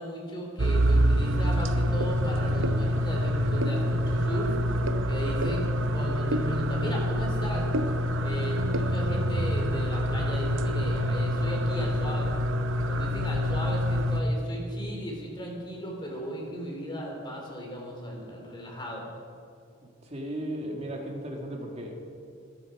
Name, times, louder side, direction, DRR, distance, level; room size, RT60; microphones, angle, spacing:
voice 1, 0.0-4.6 5.1-7.6 8.2-12.3 12.9-19.0, equal, 25° left, -1 dB, 3.2 m, -36 dB
sound 1, 0.6-14.2, equal, 90° right, 0.8 m, -26 dB
voice 2, 19.8-22.0, right 1 dB, 35° right, 1 dB, 2.2 m, -36 dB
20.0 x 11.0 x 4.9 m, 2.3 s
head